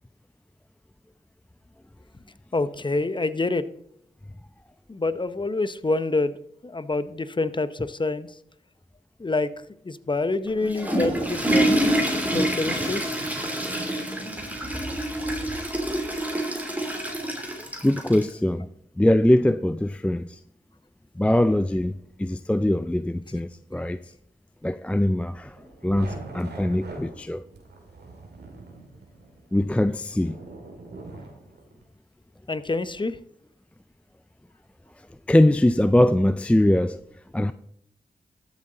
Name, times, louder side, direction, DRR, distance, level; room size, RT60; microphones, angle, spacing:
voice 1, 2.5-3.6 4.9-6.3 6.6-8.3 9.2-9.5 9.9-11.7 12.3-13.0 32.5-33.2, left 3 dB, 30° left, 0.8 m, -26 dB
Water / Toilet flush, 10.5-18.3, right 1 dB, 10° right, 2.9 m, -26 dB
voice 2, 17.8-18.7 19.0-20.4 21.2-24.0 24.6-25.6 25.8-27.4 29.5-30.4 35.3-37.0 37.3-37.5, left 1 dB, 5° left, 0.4 m, -22 dB
sound 1, 25.5-31.8, right 3 dB, 80° right, 2.1 m, -43 dB
13.5 x 7.4 x 3.9 m
cardioid pair, 45°, 17 cm